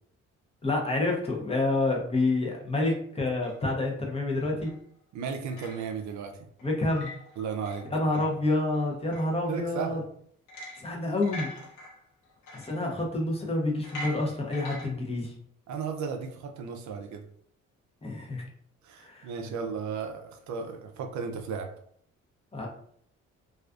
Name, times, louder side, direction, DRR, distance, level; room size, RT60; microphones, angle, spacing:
voice 1, 0.6-4.7 6.6-7.1 7.9-10.0 10.8-11.5 12.5-15.3 18.0-18.4 19.0-19.3 22.5-22.7, left 2 dB, 20° left, -1 dB, 0.6 m, -28 dB
sound 1, 3.4-3.8 4.4-4.8 5.2-6.2 6.6-8.3 8.7-9.8 10.5-10.9 11.2-13.4 13.8-14.9, left 1 dB, 80° left, 0.7 m, -44 dB
voice 2, 5.1-6.3 7.4-7.9 8.2-8.3 9.5-10.0 12.6-12.7 15.7-17.2 18.8-21.7, right 6 dB, 70° right, 4 dB, 0.5 m, -35 dB
2.4 x 2.3 x 2.4 m, 0.64 s
cardioid pair, 90°, 30 cm